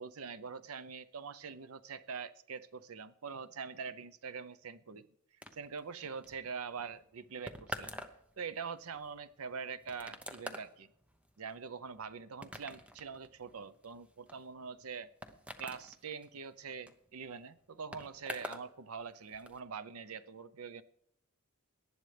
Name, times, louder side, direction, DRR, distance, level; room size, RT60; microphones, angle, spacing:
voice 1, 0.0-5.0 5.5-7.9 8.4-10.9 11.4-15.1 15.6-20.8, right 5 dB, 70° right, 15 dB, 0.6 m, -44 dB
sound 1, 5.4-18.7 19.0-19.6, equal, 5° right, 0.8 m, -48 dB
18.5 x 11.0 x 3.3 m, 0.78 s
head